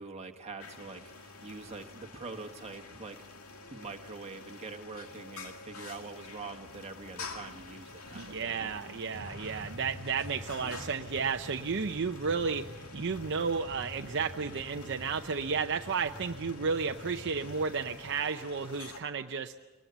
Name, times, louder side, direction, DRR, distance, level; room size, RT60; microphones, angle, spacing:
voice 1, 0.0-3.2 3.7-8.7, right 3 dB, 30° right, 4 dB, 1.5 m, -44 dB
sound 1, 0.6-19.0, left 3 dB, 85° left, 2.0 m, -48 dB
voice 2, 8.1-19.5, right 5 dB, 55° right, 6 dB, 0.7 m, -33 dB
sound 2, 9.1-18.1, left 1 dB, 35° left, 5.2 m, -47 dB
23.5 x 20.0 x 8.0 m, 1.2 s
head